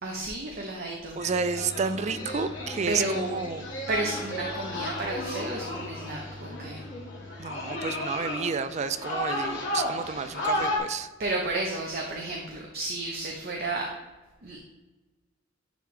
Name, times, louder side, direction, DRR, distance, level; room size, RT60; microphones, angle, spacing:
voice 1, 0.0-1.2 2.9-3.4 3.9-6.8 11.2-13.9 14.4-14.6, right 2 dB, 50° right, 0 dB, 0.8 m, -32 dB
sound 1, 1.2-10.8, left 1 dB, 65° left, 1.8 m, -34 dB
voice 2, 1.2-3.7 7.4-11.1, right 5 dB, 35° right, 12 dB, 0.4 m, -31 dB
10.0 x 3.5 x 3.3 m, 1.2 s
head